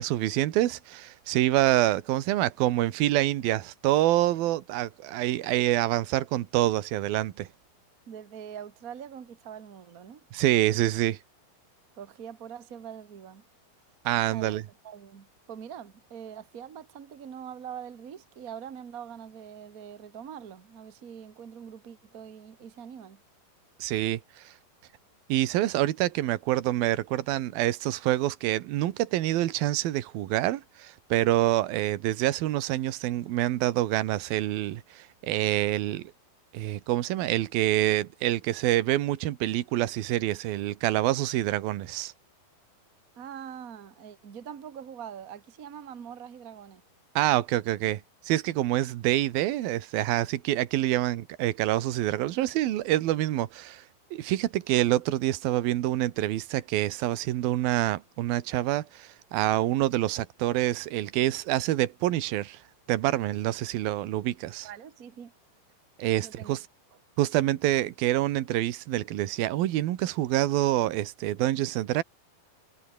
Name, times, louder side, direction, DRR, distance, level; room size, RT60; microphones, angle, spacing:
voice 1, 0.0-7.5 10.3-11.2 14.0-14.6 23.8-24.5 25.3-36.1 36.5-42.1 47.2-48.0 48.3-53.8 54.1-62.6 62.9-64.7 66.0-66.6 67.2-72.0, right 14 dB, 75° right, 3.1 m, -26 dB
voice 2, 8.1-10.2 12.0-13.4 14.3-23.2 43.2-46.8 64.6-65.3 66.2-66.6, right 8 dB, 60° right, 0.9 m, -43 dB
omnidirectional pair, 4.4 m